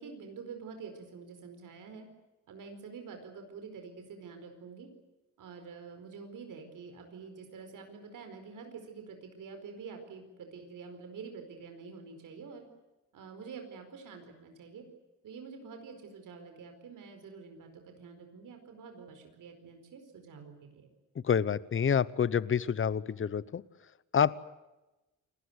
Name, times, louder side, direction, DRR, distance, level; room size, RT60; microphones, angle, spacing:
voice 1, 0.0-2.1 2.5-4.9 5.4-12.7 13.1-14.8 15.2-20.9, right 5 dB, 80° right, 5 dB, 4.7 m, -47 dB
voice 2, 21.1-23.6 24.1-24.4, left 7 dB, 40° left, 19 dB, 0.9 m, -28 dB
28.5 x 20.0 x 8.1 m, 1.0 s
cardioid pair, 120°, 31 cm